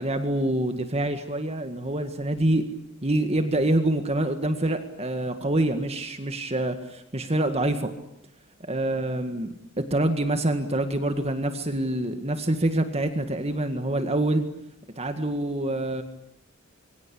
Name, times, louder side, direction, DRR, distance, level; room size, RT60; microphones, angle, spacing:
voice 1, 0.0-2.6 3.0-7.9 8.7-14.4 15.0-16.0, right 1 dB, 30° right, 7 dB, 1.8 m, -26 dB
26.5 x 24.0 x 8.6 m, 0.76 s
head